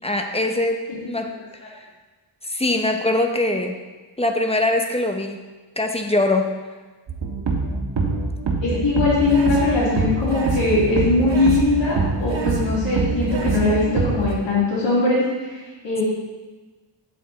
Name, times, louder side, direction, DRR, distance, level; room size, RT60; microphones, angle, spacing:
voice 1, 0.0-1.3 2.4-3.8 4.2-5.4 5.8-6.5, left 2 dB, 15° left, 4 dB, 0.9 m, -22 dB
voice 2, 0.9-1.3 8.6-16.0, left 3 dB, 80° left, -9 dB, 2.7 m, -21 dB
sound 1, 7.1-14.3, right 3 dB, 70° right, 1.4 m, -24 dB
8.6 x 7.2 x 4.1 m, 1.3 s
wide cardioid pair, 90°, 44 cm